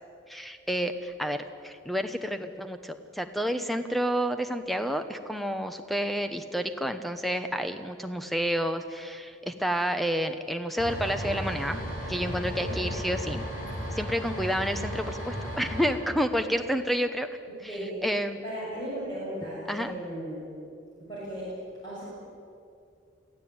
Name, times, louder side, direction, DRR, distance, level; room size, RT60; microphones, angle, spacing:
voice 1, 0.3-11.8 12.1-13.4 13.9-17.3 18.0-18.4 19.7-19.9, equal, ahead, 8 dB, 0.9 m, -30 dB
sound 1, 10.8-15.9, equal, 45° left, 5.2 m, -34 dB
voice 2, 18.4-20.4 21.0-21.5 21.8-22.0, right 1 dB, 20° left, -8 dB, 6.6 m, -36 dB
23.0 x 15.0 x 8.8 m, 2.4 s
head